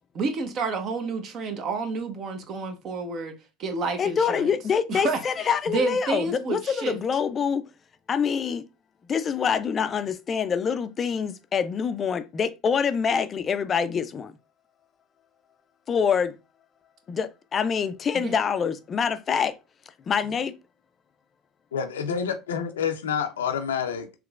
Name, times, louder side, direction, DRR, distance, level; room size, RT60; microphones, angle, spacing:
voice 1, 0.1-4.5 4.9-7.0 18.1-18.3, right 4 dB, 50° right, 0.8 m, -30 dB
voice 2, 4.0-7.7 8.1-8.6 9.1-14.3 15.9-16.3 17.1-19.5 20.1-20.6, left 6 dB, 35° left, 0.4 m, -25 dB
voice 3, 21.7-24.2, left 7 dB, 90° left, 0.5 m, -28 dB
3.7 x 2.9 x 2.3 m
hypercardioid pair, 85°, 0 cm